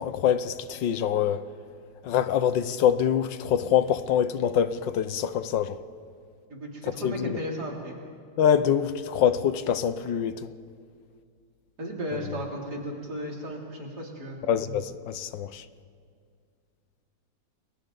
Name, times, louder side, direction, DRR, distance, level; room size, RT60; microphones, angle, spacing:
voice 1, 0.0-1.4 2.0-5.8 7.0-7.4 8.4-10.5 14.5-15.6, left 9 dB, 90° left, 1.5 m, -25 dB
voice 2, 6.5-8.0 11.8-14.4, equal, 60° right, 3.7 m, -35 dB
30.0 x 22.5 x 4.0 m
omnidirectional pair, 1.9 m